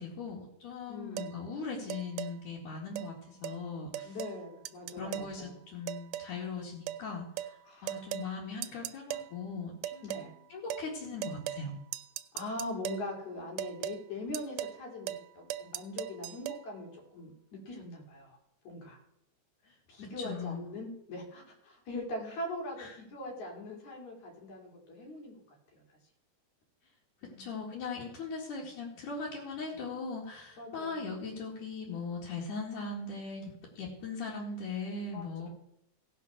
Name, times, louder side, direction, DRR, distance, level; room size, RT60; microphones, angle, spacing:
voice 1, 0.0-4.1 5.0-7.6 7.8-10.2 10.5-11.7 20.2-20.7 22.8-23.0 27.2-35.5, left 4 dB, 85° left, -6 dB, 3.6 m, -39 dB
voice 2, 0.9-1.3 4.0-5.5 7.7-7.9 10.0-10.3 12.3-18.4 18.6-19.0 19.9-25.3 25.7-25.8 27.2-27.7 30.6-31.1 35.1-35.5, left 1 dB, 70° left, -1 dB, 4.3 m, -41 dB
sound 1, 1.2-1.3 1.9-2.3 3.0-3.1 3.4-3.6 3.9-4.4 4.7-5.3 5.9-6.3 6.9-7.0 7.4-7.5 7.9-8.3 8.6-9.3 9.8-10.3 10.7-10.9 11.2-11.7 11.9-13.1 13.6-14.0 14.3-14.8 15.1-15.3 15.5-16.6, right 13 dB, 85° right, 2.0 m, -38 dB
17.0 x 5.9 x 6.2 m, 0.78 s
omnidirectional pair, 3.5 m